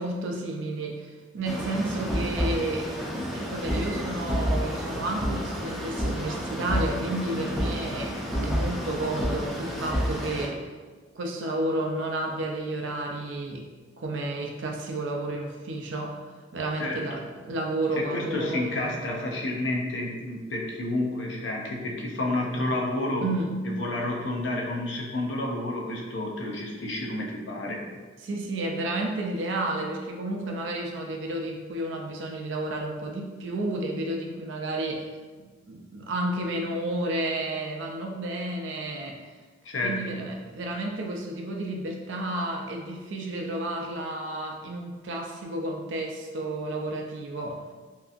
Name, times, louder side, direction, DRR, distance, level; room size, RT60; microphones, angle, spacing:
voice 1, 0.0-2.9 3.3-10.7 11.2-13.7 14.0-16.2 16.5-19.0 23.2-23.5 28.2-35.1 35.4-39.2 39.8-47.6, right 1 dB, 90° right, 1 dB, 0.4 m, -31 dB
sound 1, 1.5-10.5, equal, ahead, 0.4 m, -30 dB
voice 2, 18.0-23.2 23.6-27.8 39.6-40.2, left 2 dB, 85° left, -1 dB, 0.5 m, -30 dB
2.7 x 2.4 x 2.4 m, 1.4 s
head